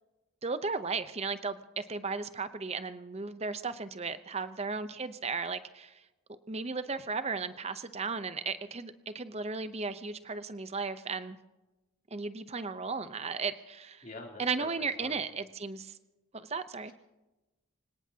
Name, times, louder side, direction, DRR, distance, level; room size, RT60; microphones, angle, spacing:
voice 1, 0.4-6.0 6.3-11.4 12.1-14.1 14.4-16.0 16.3-16.9, right 4 dB, 30° right, 12 dB, 0.7 m, -35 dB
voice 2, 14.0-15.2 16.8-16.9, left 2 dB, 40° left, 0 dB, 3.3 m, -46 dB
25.5 x 18.0 x 2.9 m, 1.1 s
head